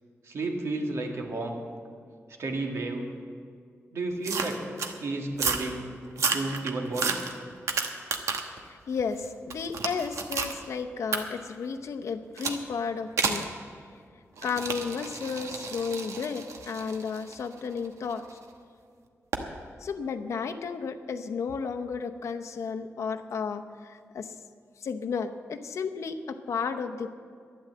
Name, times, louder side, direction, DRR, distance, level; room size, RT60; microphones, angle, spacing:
voice 1, 0.2-1.6 2.4-3.1 3.9-4.6 5.0-5.9 6.2-7.2, right 2 dB, 70° right, 1 dB, 1.9 m, -32 dB
sound 1, 4.2-4.9 5.3-5.7 6.1-8.6 9.0-10.6 11.1-11.2 12.4-12.6 13.2-13.5 14.4-18.3 19.3-19.5, right 5 dB, 85° right, 1.1 m, -31 dB
voice 2, 8.6-13.5 14.4-18.2 19.8-24.3 24.8-27.1, left 5 dB, 75° left, 6 dB, 0.8 m, -33 dB
12.0 x 10.5 x 7.5 m, 2.2 s
wide cardioid pair, 130°, 5 cm